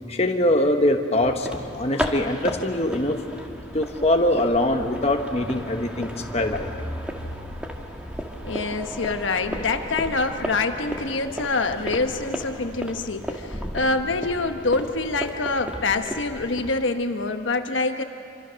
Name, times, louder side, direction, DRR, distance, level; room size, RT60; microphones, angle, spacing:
voice 1, 0.1-3.2 3.7-6.7, left 1 dB, 30° left, 4 dB, 1.1 m, -23 dB
sound 1, 1.3-16.8, equal, 5° right, 1.6 m, -34 dB
voice 2, 8.4-18.0, left 3 dB, 70° left, 6 dB, 1.2 m, -25 dB
26.5 x 25.0 x 6.4 m, 2.5 s
head